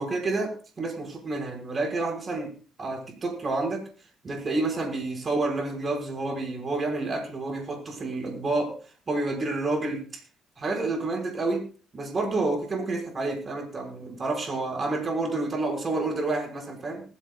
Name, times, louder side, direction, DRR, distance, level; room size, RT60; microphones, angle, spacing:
voice 1, 0.0-2.5 2.8-3.8 4.2-8.7 9.1-10.0 10.6-11.6 11.9-17.0, right 2 dB, 40° right, 3 dB, 5.5 m, -29 dB
20.5 x 15.5 x 2.4 m, 0.37 s
cardioid pair, 90°, 0 cm